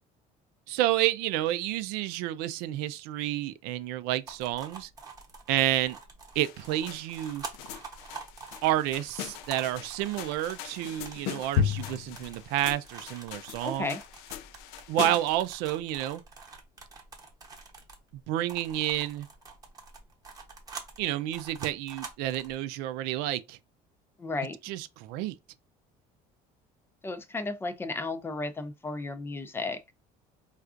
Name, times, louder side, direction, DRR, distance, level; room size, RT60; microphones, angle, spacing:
voice 1, 0.7-4.9 5.5-6.0 6.4-7.4 8.6-14.0 14.9-16.2 18.3-19.3 21.0-23.6 24.6-25.4, right 14 dB, 80° right, 0.4 m, -30 dB
sound 1, 4.3-18.1 18.5-22.6, right 4 dB, 25° right, 0.9 m, -46 dB
sound 2, 6.3-15.4, left 8 dB, 85° left, 0.4 m, -36 dB
voice 2, 13.6-14.0 24.2-24.6 27.0-29.8, left 3 dB, 15° left, 0.4 m, -34 dB
4.4 x 2.4 x 2.4 m
cardioid pair, 145°, 16 cm